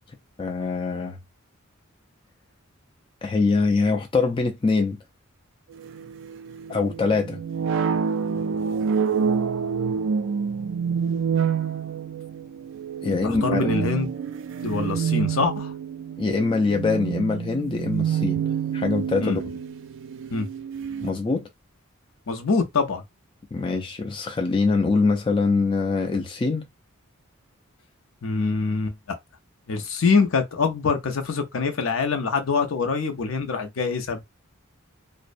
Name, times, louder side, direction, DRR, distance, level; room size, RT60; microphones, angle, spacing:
voice 1, 0.4-1.2 3.2-5.0 6.7-7.4 13.0-13.6 16.2-18.4 18.7-19.6 21.0-21.5 23.5-26.7, left 4 dB, 25° left, 0.3 m, -23 dB
sound 1, 5.8-21.1, right 7 dB, 60° right, 0.3 m, -27 dB
voice 2, 13.2-14.1 14.6-15.7 19.2-19.4 20.3-20.5 22.3-23.0 28.2-29.2 29.7-34.2, left 4 dB, 70° left, 0.5 m, -24 dB
2.5 x 2.1 x 2.5 m
head